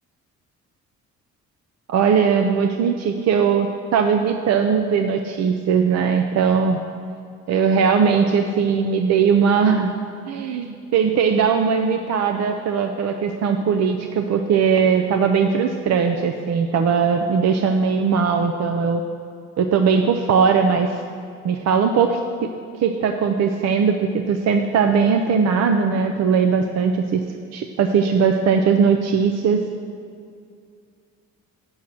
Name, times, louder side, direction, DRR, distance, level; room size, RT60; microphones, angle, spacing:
voice 1, 1.9-6.8 7.5-9.9 10.3-19.0 19.6-20.9 21.4-22.5 22.8-27.2 27.5-29.6, right 6 dB, 60° right, 4 dB, 0.6 m, -19 dB
7.6 x 6.3 x 7.2 m, 2.3 s
cardioid pair, 90°, 30 cm